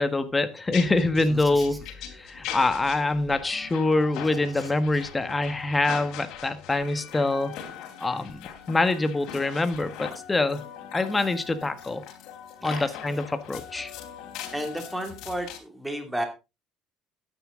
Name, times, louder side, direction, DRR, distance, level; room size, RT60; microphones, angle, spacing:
voice 1, 0.0-1.8 2.1-7.5 8.0-10.6 10.9-12.0 12.6-13.9, left 2 dB, 15° left, 10 dB, 1.6 m, -25 dB
sound 1, 0.7-15.6, left 9 dB, 75° left, 3.1 m, -41 dB
voice 2, 1.3-1.8 4.5-4.7 12.6-12.9 14.5-16.3, right 1 dB, 5° right, 5 dB, 2.7 m, -33 dB
12.5 x 9.8 x 3.9 m, 0.27 s
cardioid pair, 115°, 0 cm